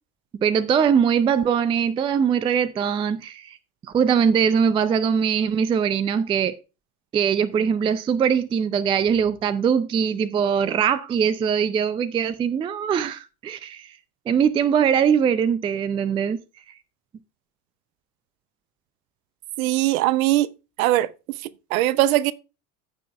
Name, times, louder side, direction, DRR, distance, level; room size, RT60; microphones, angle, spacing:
voice 1, 0.3-3.6 3.9-6.6 7.1-14.0 14.3-16.4, right 7 dB, 10° right, 0.4 m, -21 dB
voice 2, 19.6-20.5 20.8-21.1 21.7-22.3, right 15 dB, 55° right, 0.8 m, -20 dB
15.0 x 6.1 x 2.3 m
figure-of-eight pair, 70°, 49 cm